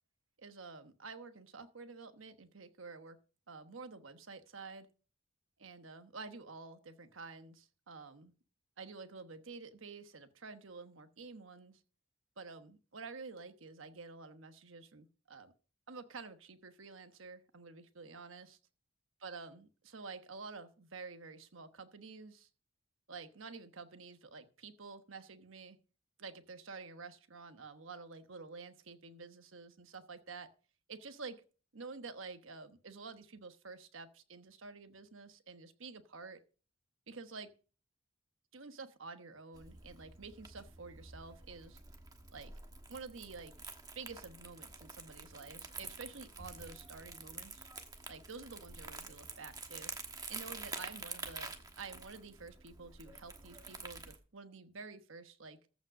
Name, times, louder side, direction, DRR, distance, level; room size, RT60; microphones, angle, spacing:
voice 1, 0.4-3.2 3.5-4.9 5.6-8.3 8.8-11.8 12.4-15.5 15.9-18.6 19.2-22.5 23.1-25.8 26.2-30.5 30.9-31.4 31.7-36.4 37.1-37.5 38.5-41.8 42.3-42.5 42.9-43.5 43.9-47.7 48.1-49.9 50.3-55.6, right 4 dB, 75° right, 9 dB, 1.1 m, -49 dB
Crumpling crinkling, 39.5-54.2, right 4 dB, 20° right, 1.2 m, -48 dB
14.5 x 5.2 x 6.4 m, 0.38 s
head